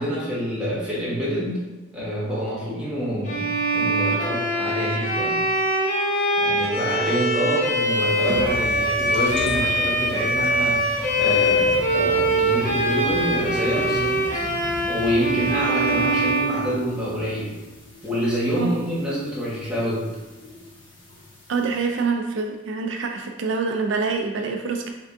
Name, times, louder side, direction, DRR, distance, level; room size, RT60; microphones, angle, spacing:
voice 1, 0.0-5.4 6.4-14.4 14.8-17.6 18.0-20.1, equal, 5° right, -9 dB, 1.2 m, -27 dB
Bowed string instrument, 3.2-17.3, right 1 dB, 40° left, 0.7 m, -23 dB
sound 1, 7.6-21.9, equal, 65° left, 1.1 m, -38 dB
voice 2, 21.5-24.9, right 4 dB, 70° right, 3 dB, 0.4 m, -25 dB
5.1 x 3.4 x 2.6 m, 1.1 s
head